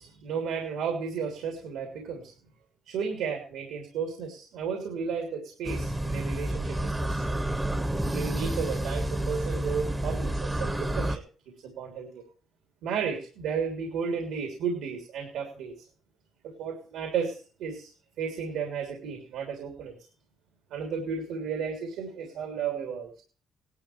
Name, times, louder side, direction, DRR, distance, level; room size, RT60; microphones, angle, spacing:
voice 1, 0.0-2.3 2.9-7.4 8.1-11.2 11.6-12.2 12.8-15.7 16.4-17.9 18.2-19.9 20.7-23.2, right 6 dB, 90° right, 3 dB, 3.2 m, -33 dB
sound 1, 5.6-11.2, right 1 dB, 15° right, 1.2 m, -29 dB
18.0 x 12.0 x 3.2 m, 0.39 s
cardioid pair, 90°, 0 cm